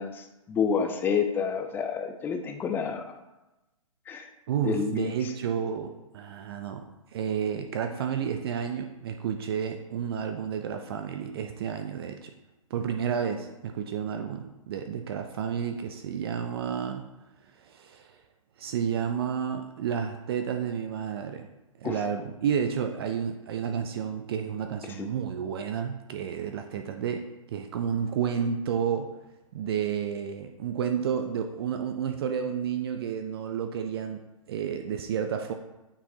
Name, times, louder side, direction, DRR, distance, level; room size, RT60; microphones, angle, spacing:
voice 1, 0.0-3.1 4.1-4.3 4.6-5.1 21.8-22.0 25.0-25.1, left 6 dB, 10° left, 6 dB, 0.4 m, -29 dB
voice 2, 4.5-6.8 7.1-12.3 12.7-17.1 17.6-18.2 18.6-21.5 21.8-27.2 27.5-29.1 29.5-34.2 34.5-35.5, right 7 dB, 45° right, 5 dB, 0.5 m, -31 dB
8.7 x 4.4 x 2.8 m, 1.0 s
figure-of-eight pair, 125°, 18 cm